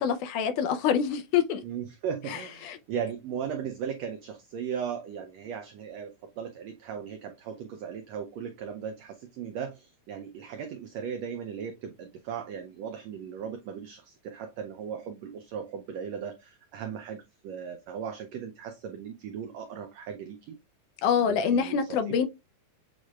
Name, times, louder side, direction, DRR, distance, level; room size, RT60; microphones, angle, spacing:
voice 1, 0.0-1.6 2.3-2.8 21.0-22.3, left 7 dB, 80° left, 2.0 m, -26 dB
voice 2, 1.6-6.1 6.4-20.6 21.2-22.2, right 7 dB, 85° right, 1.5 m, -37 dB
7.5 x 3.1 x 2.2 m
omnidirectional pair, 3.7 m